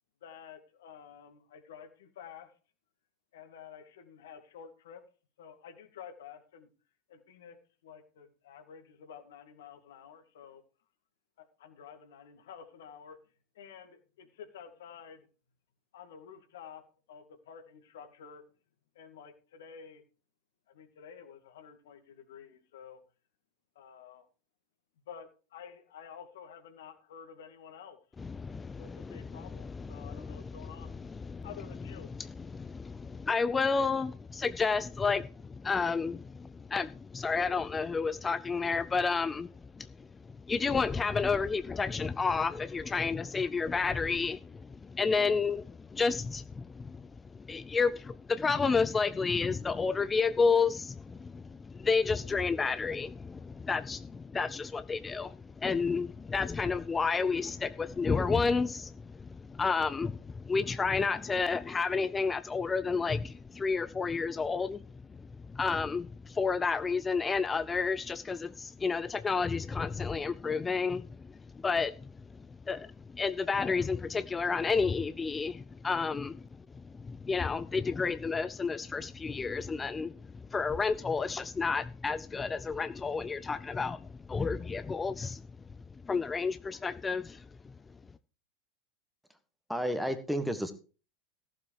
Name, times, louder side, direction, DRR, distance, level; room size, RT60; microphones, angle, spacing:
voice 1, 0.2-2.5 3.3-5.0 5.4-6.7 7.1-7.6 7.8-10.6 11.6-13.2 13.5-15.3 15.9-16.8 17.1-18.4 18.9-20.0 20.7-23.0 23.8-24.3 25.0-28.0 28.8-30.9 31.4-32.1, left 7 dB, 65° left, 2.2 m, -50 dB
voice 2, 28.2-31.5 32.1-85.4 86.0-87.7, left 4 dB, 20° left, 0.5 m, -31 dB
voice 3, 89.7-90.7, equal, ahead, 1.6 m, -31 dB
15.0 x 7.4 x 4.8 m
figure-of-eight pair, 85°, 0 cm